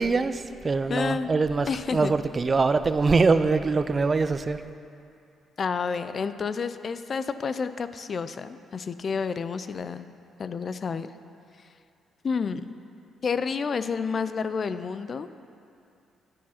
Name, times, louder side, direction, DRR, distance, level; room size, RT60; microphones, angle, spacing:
voice 1, 0.0-4.6, right 4 dB, 30° right, 11 dB, 0.3 m, -23 dB
voice 2, 0.9-1.3 1.7-2.1 5.6-10.1 10.4-11.1 12.2-12.7 13.2-15.3, left 5 dB, 45° left, 12 dB, 0.3 m, -29 dB
9.7 x 4.7 x 5.7 m, 2.5 s
cardioid pair, 90°, 0 cm